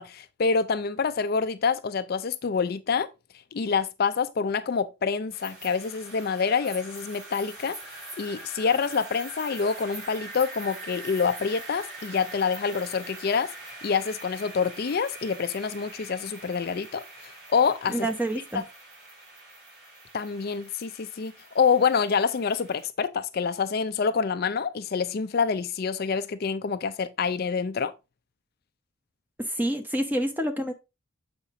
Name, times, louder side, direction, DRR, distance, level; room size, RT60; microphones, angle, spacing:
voice 1, 0.0-3.1 3.5-7.8 8.2-13.5 13.8-18.0 18.5-18.6 20.1-27.9, left 5 dB, 45° left, 0.4 m, -27 dB
sound 1, 5.3-22.8, right 2 dB, 50° right, 4.5 m, -43 dB
voice 2, 17.9-18.6 29.4-30.7, right 1 dB, 10° right, 0.8 m, -28 dB
7.2 x 5.1 x 3.7 m
head